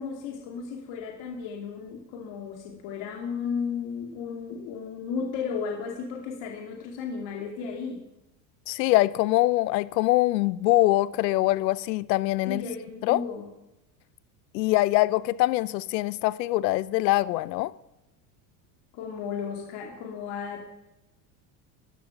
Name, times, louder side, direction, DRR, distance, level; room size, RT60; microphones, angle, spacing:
voice 1, 0.0-8.1 12.5-13.5 18.9-20.6, left 6 dB, 60° left, 2.6 m, -34 dB
voice 2, 8.7-12.6 13.0-13.2 14.5-17.7, left 17 dB, 90° left, 0.8 m, -23 dB
14.0 x 11.0 x 5.9 m
supercardioid pair, 115°, 49 cm